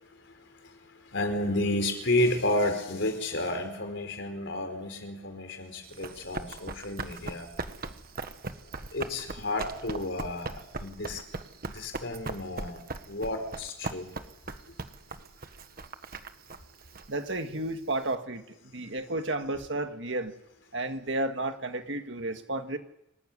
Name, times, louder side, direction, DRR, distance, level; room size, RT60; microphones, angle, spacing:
voice 1, 1.1-7.5 8.9-11.2 11.7-12.8 13.1-14.1, left 1 dB, 70° left, 6 dB, 4.6 m, -31 dB
Run, 5.8-18.1, right 3 dB, 50° right, 1.4 m, -40 dB
voice 2, 17.1-20.3 20.7-22.8, right 2 dB, 65° right, 7 dB, 1.9 m, -32 dB
26.0 x 15.0 x 9.9 m, 0.86 s
head